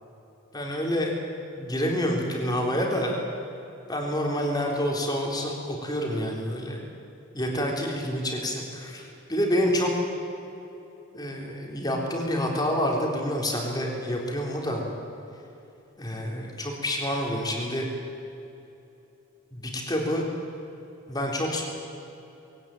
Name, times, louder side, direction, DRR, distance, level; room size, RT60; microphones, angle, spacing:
voice 1, 0.5-1.1 1.6-3.2 3.9-6.8 7.3-9.9 11.1-14.8 16.0-17.9 19.5-20.3 21.1-21.6, equal, 20° left, 0 dB, 3.8 m, -28 dB
22.0 x 17.5 x 9.0 m, 2.9 s
head